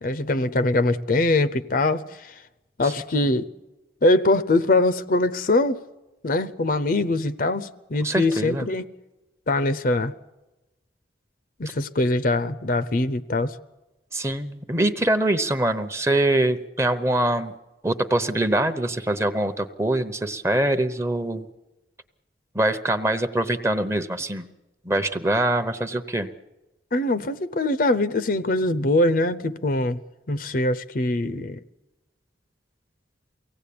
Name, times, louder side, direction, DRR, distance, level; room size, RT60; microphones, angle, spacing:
voice 1, 0.0-2.3 2.8-3.5 4.0-5.8 6.2-8.8 9.5-10.1 11.6-13.6 26.9-30.0 30.3-31.6, left 2 dB, 50° left, 0.7 m, -22 dB
voice 2, 8.0-8.7 14.1-17.5 17.8-21.5 22.5-24.5 24.8-26.3, right 1 dB, 15° right, 0.9 m, -24 dB
23.5 x 17.5 x 8.6 m
head